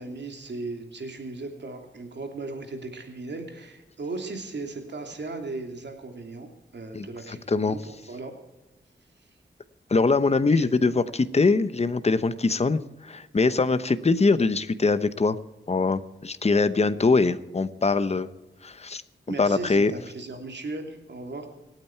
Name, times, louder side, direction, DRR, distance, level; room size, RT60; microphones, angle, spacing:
voice 1, 0.0-8.4 9.2-9.3 10.5-10.7 19.3-21.5, right 3 dB, 65° right, 4 dB, 2.9 m, -37 dB
voice 2, 9.9-15.4 15.7-18.3 18.6-19.0 19.4-19.9, left 3 dB, 35° left, 12 dB, 0.9 m, -22 dB
26.5 x 9.1 x 4.5 m, 1.0 s
wide cardioid pair, 85°, 19 cm